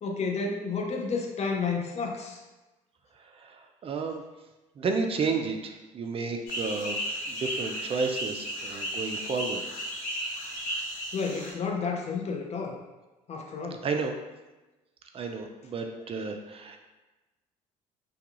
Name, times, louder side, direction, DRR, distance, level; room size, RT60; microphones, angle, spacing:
voice 1, 0.0-2.4 11.1-12.8 13.3-13.9, left 4 dB, 40° left, 1 dB, 0.6 m, -31 dB
voice 2, 3.4-4.2 4.8-7.0 7.3-9.6 13.8-14.1 15.1-16.8, right 4 dB, 30° right, 4 dB, 0.4 m, -31 dB
sound 1, 6.5-11.5, equal, 70° left, 0.9 m, -34 dB
2.3 x 2.3 x 2.9 m, 1.1 s
hypercardioid pair, 55°, 18 cm